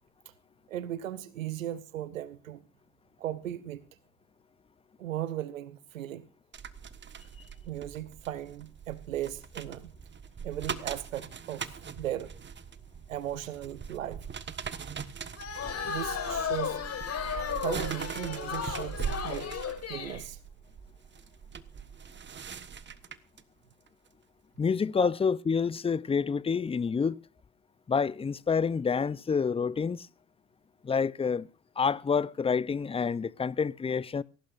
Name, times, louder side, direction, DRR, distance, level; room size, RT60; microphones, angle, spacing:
voice 1, 0.7-2.6 3.2-3.8 5.0-6.3 7.6-9.9 10.4-11.7 12.0-12.3 13.1-14.3 15.9-16.8 17.6-19.6 19.9-20.4 25.0-25.1, right 12 dB, 85° right, 1.0 m, -37 dB
sound 1, 6.5-23.4 23.9-24.1, right 7 dB, 30° right, 1.4 m, -41 dB
sound 2, 15.4-20.2, left 7 dB, 40° left, 4.9 m, -34 dB
voice 2, 24.6-27.2 27.9-30.1 30.8-31.5 31.8-34.2, left 5 dB, 15° left, 0.6 m, -28 dB
22.0 x 18.0 x 2.6 m
hypercardioid pair, 65°, 39 cm